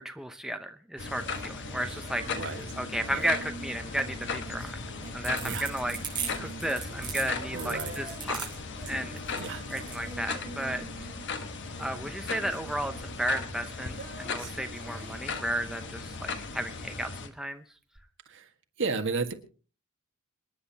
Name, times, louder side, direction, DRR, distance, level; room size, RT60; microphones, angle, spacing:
voice 1, 0.0-2.2 2.8-4.8 5.1-6.0 6.4-8.5 8.9-9.1 9.7-11.1 11.8-12.9 13.2-17.6, right 1 dB, ahead, 6 dB, 0.7 m, -33 dB
sound 1, 1.0-17.3, left 4 dB, 55° left, 1.3 m, -38 dB
Female singing, 1.0-16.4 18.0-18.1, right 2 dB, 45° right, 6.2 m, -47 dB
voice 2, 2.2-2.7 3.1-3.3 5.4-5.7 6.4-6.6 7.5-8.0 9.3-9.7 18.2-18.5 18.8-19.3, right 4 dB, 60° right, 5 dB, 1.7 m, -33 dB
sound 2, 4.9-10.0, right 7 dB, 20° right, 6.4 m, -37 dB
27.0 x 10.0 x 2.9 m, 0.38 s
head